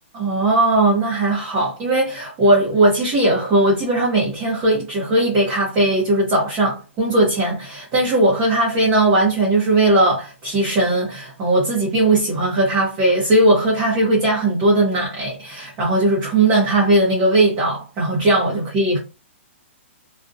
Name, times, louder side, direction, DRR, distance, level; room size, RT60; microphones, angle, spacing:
voice 1, 0.1-19.0, right 2 dB, 20° right, 0.6 m, -18 dB
2.4 x 2.1 x 2.4 m
hypercardioid pair, 165°, 7 cm